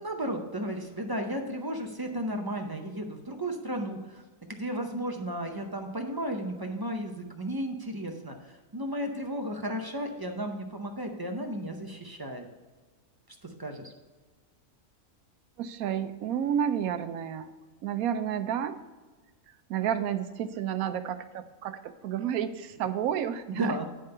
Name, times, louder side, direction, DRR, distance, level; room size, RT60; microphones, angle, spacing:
voice 1, 0.0-4.2 4.5-12.5 13.6-13.9 23.6-23.9, equal, 40° right, 3 dB, 0.3 m, -34 dB
voice 2, 15.6-17.5 17.8-18.8 19.7-23.8, right 9 dB, 85° right, 11 dB, 1.1 m, -30 dB
10.0 x 3.5 x 6.6 m, 1.3 s
omnidirectional pair, 1.5 m